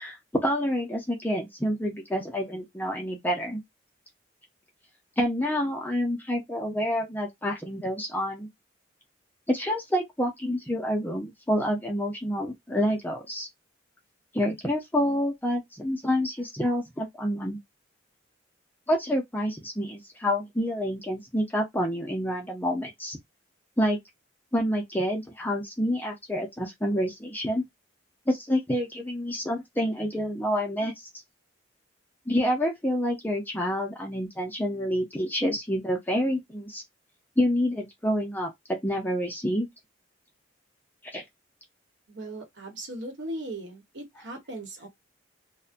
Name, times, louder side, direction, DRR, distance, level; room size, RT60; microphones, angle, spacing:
voice 1, 0.0-3.6 5.2-8.5 9.5-13.5 14.3-17.6 18.9-23.2 23.8-24.0 24.5-27.6 28.3-30.9 32.3-36.8 37.4-38.5 38.8-39.7 41.1-41.2, equal, 10° left, 0.6 m, -28 dB
voice 2, 42.1-44.9, right 1 dB, 70° right, 1.1 m, -38 dB
2.5 x 2.2 x 2.4 m
head